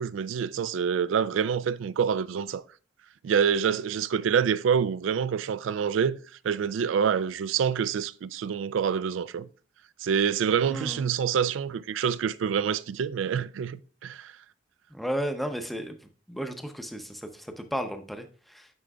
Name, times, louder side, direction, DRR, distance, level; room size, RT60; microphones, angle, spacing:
voice 1, 0.0-2.6 3.2-6.2 6.4-9.5 10.0-14.3, right 7 dB, 85° right, 0.3 m, -26 dB
voice 2, 10.7-11.1 14.9-16.0 16.3-18.7, equal, ahead, 0.5 m, -34 dB
9.6 x 5.0 x 2.3 m
head